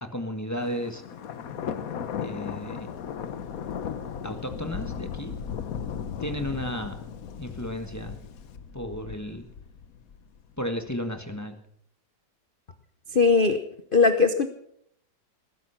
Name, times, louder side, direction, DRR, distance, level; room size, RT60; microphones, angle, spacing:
voice 1, 0.0-1.0 2.2-2.9 4.2-5.3 6.2-7.0 7.4-8.1 8.7-9.4 10.6-11.6, equal, 10° left, 6 dB, 1.4 m, -33 dB
Thunder, 0.6-10.4, left 7 dB, 60° left, 1.3 m, -36 dB
voice 2, 13.1-13.6 13.9-14.5, left 4 dB, 40° left, 9 dB, 0.9 m, -19 dB
19.5 x 10.5 x 5.8 m, 0.70 s
omnidirectional pair, 1.9 m